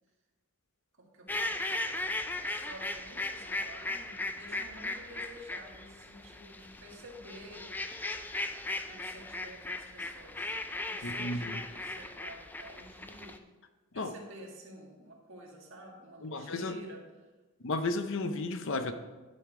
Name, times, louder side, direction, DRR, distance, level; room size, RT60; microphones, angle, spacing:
voice 1, 1.0-2.0 2.3-7.7 8.4-13.4 13.9-17.0, right 1 dB, 60° right, -1 dB, 1.8 m, -51 dB
sound 1, 1.3-13.4, left 2 dB, 10° left, 0.3 m, -37 dB
voice 2, 11.0-11.6 13.9-14.1 16.2-16.7 17.6-18.9, left 2 dB, 60° left, 9 dB, 0.6 m, -33 dB
10.5 x 5.5 x 4.8 m, 1.2 s
head